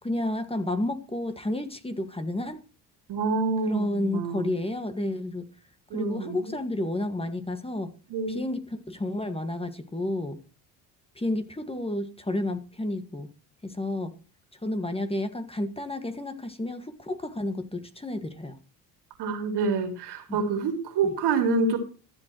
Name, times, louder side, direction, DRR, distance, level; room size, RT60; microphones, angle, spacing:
voice 1, 0.0-2.6 3.7-5.4 5.9-7.9 8.3-10.4 11.2-13.3 13.6-14.1 14.6-18.6 20.3-20.4 21.0-21.1, left 1 dB, 15° left, 1.8 m, -31 dB
voice 2, 3.1-4.5 5.9-6.5 8.1-8.4 19.2-21.8, right 4 dB, 70° right, 3.4 m, -27 dB
14.5 x 7.7 x 3.1 m
supercardioid pair, 75°, 41 cm